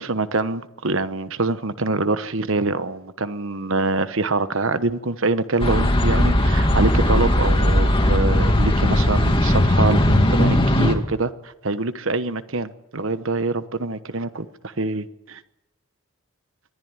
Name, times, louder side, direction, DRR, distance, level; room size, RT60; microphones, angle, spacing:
voice 1, 0.0-15.4, right 3 dB, 60° right, 12 dB, 1.1 m, -25 dB
sound 1, 5.6-10.9, left 1 dB, 25° left, 2.3 m, -18 dB
23.0 x 14.5 x 9.6 m, 0.90 s
head